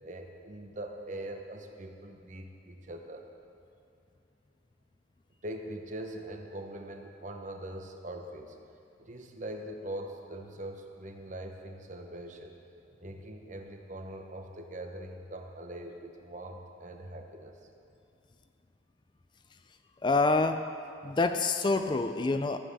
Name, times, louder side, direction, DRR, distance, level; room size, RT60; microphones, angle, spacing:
voice 1, 0.0-3.3 5.4-8.6 9.0-12.6 13.0-17.6, right 1 dB, 40° right, 4 dB, 1.0 m, -42 dB
voice 2, 20.0-20.7 21.0-22.6, left 3 dB, 25° left, 8 dB, 0.3 m, -26 dB
14.5 x 7.6 x 6.8 m, 2.6 s
head